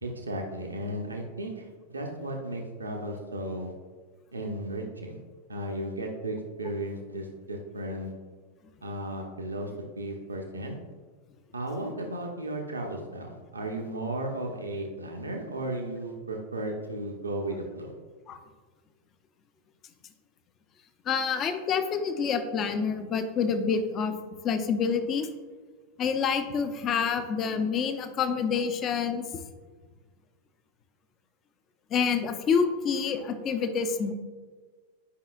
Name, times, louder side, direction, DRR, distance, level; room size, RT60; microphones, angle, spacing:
voice 1, 0.0-3.7 4.3-5.2 5.5-8.1 8.8-9.7 10.0-10.8 11.5-17.9, right 1 dB, 75° right, 1 dB, 0.9 m, -35 dB
voice 2, 21.1-24.1 24.4-25.3 26.0-29.2 31.9-34.1, left 6 dB, 30° left, 8 dB, 0.6 m, -27 dB
10.0 x 5.6 x 2.4 m, 1.4 s
figure-of-eight pair, 90°, 0 cm